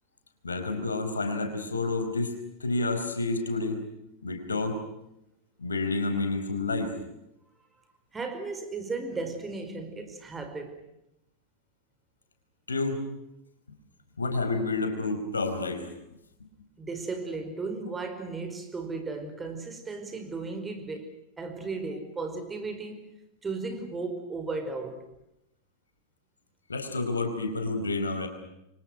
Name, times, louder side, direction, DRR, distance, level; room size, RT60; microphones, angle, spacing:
voice 1, 0.4-2.3 2.6-3.8 4.2-4.8 5.6-6.9 12.7-13.0 14.2-15.9 26.7-28.3, left 3 dB, 75° left, 4.6 m, -29 dB
voice 2, 8.1-10.8 16.8-23.1 23.4-25.1, right 3 dB, 15° right, 5.1 m, -35 dB
29.5 x 24.5 x 6.3 m
figure-of-eight pair, 90°, 0 cm